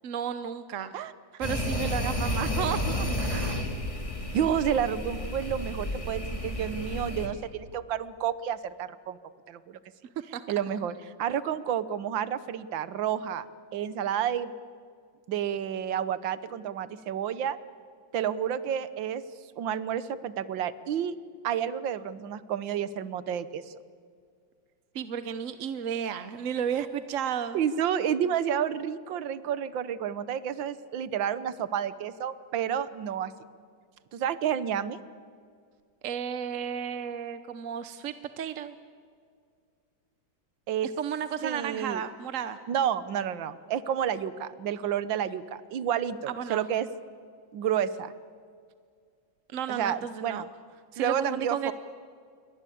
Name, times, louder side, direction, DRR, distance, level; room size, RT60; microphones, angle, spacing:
voice 1, 0.0-0.9 1.4-3.2 10.3-10.4 24.9-27.6 36.0-38.7 41.0-42.6 46.3-46.6 49.5-50.4 50.9-51.7, right 8 dB, 55° right, 12 dB, 1.0 m, -33 dB
sound 1, 1.4-7.3, left 1 dB, 15° left, 2.7 m, -31 dB
voice 2, 3.2-3.6 4.3-9.2 9.5-9.8 10.5-13.5 13.7-14.5 15.3-17.6 18.1-19.2 19.6-21.2 21.4-23.7 27.5-33.3 34.1-35.0 40.7-40.9 41.4-42.0 42.7-46.9 47.5-48.1 49.7-50.4 51.0-51.7, right 9 dB, 75° right, 15 dB, 1.7 m, -30 dB
28.5 x 23.0 x 8.5 m, 2.2 s
omnidirectional pair, 2.1 m